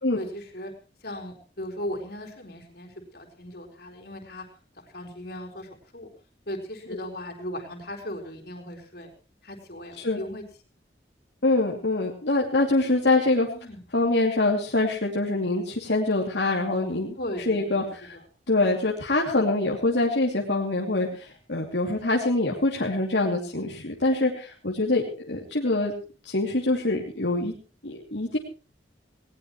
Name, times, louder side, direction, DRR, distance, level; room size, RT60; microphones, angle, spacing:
voice 1, 0.1-0.7 1.0-4.5 4.8-6.1 6.5-9.1 9.4-10.4 13.5-13.8 17.2-18.2, equal, 60° left, 3 dB, 4.3 m, -37 dB
voice 2, 11.4-13.5 13.9-17.1 17.5-18.2 18.5-25.9 26.2-27.5 27.8-28.4, left 2 dB, 80° left, -1 dB, 2.8 m, -24 dB
19.5 x 19.0 x 3.1 m, 0.36 s
head